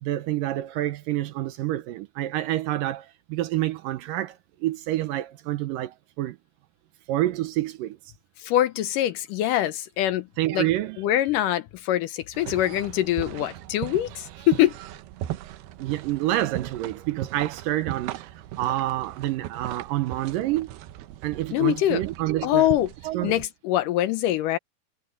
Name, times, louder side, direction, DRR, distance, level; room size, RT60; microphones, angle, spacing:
voice 1, 0.0-6.4 7.1-8.0 10.4-11.0 15.8-20.7 21.2-22.7 23.0-23.4, right 14 dB, 75° right, 2.2 m, -28 dB
voice 2, 8.4-10.3 10.5-10.7 11.0-14.7 21.5-22.0 22.4-22.9 23.2-24.6, left 13 dB, 75° left, 2.0 m, -24 dB
sound 1, 12.3-23.5, right 13 dB, 90° right, 2.9 m, -38 dB
omnidirectional pair, 4.5 m